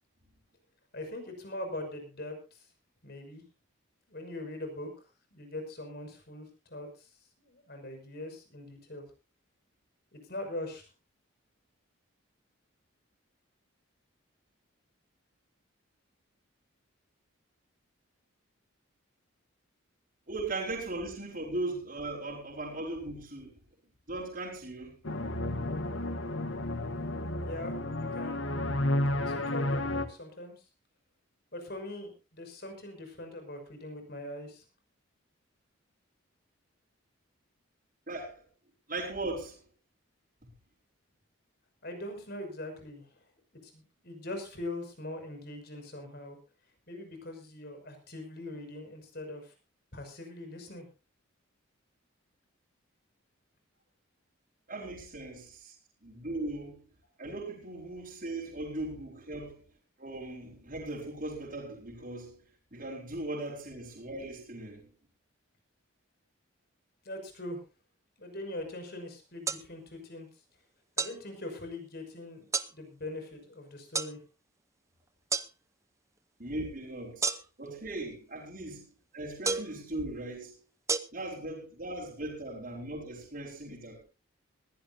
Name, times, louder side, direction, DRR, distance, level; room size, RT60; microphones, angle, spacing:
voice 1, 0.9-2.7 3.0-3.4 4.1-4.9 5.3-7.1 7.5-9.0 10.1-10.9 27.4-28.4 29.1-30.6 31.5-34.6 41.8-43.3 43.6-46.4 46.9-49.5 49.9-50.9 67.0-67.6 68.2-70.3 71.0-74.2, left 1 dB, 50° left, 6.0 m, -42 dB
voice 2, 20.3-23.5 24.1-25.0 38.1-38.4 38.9-39.6 54.7-55.7 56.0-56.8 57.2-59.6 60.0-62.4 62.7-64.9 76.4-77.3 77.6-78.8 79.1-80.6 81.1-84.0, right 2 dB, 40° right, 4.7 m, -38 dB
sound 1, 25.0-30.1, left 1 dB, 65° left, 1.6 m, -31 dB
sound 2, 69.5-69.6 71.0-71.2 72.5-72.7 73.9-74.1 75.3-75.5 77.2-77.7 79.4-79.8 80.9-81.0, right 4 dB, 15° right, 0.7 m, -30 dB
21.0 x 16.0 x 2.7 m
head